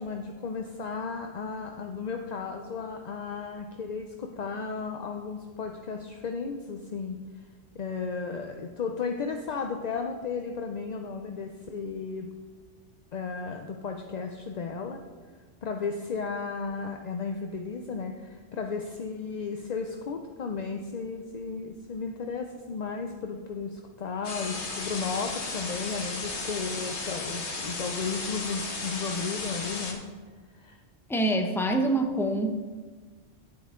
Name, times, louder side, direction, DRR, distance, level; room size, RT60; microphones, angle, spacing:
voice 1, 0.0-7.2 7.7-12.3 13.1-15.0 15.6-30.0 30.5-30.8, left 5 dB, 50° left, 4 dB, 0.5 m, -34 dB
sound 1, 24.2-29.9, left 3 dB, 70° left, 1.5 m, -34 dB
voice 2, 31.1-32.5, right 1 dB, 5° left, 4 dB, 0.6 m, -25 dB
10.0 x 8.6 x 3.7 m, 1.4 s
omnidirectional pair, 1.2 m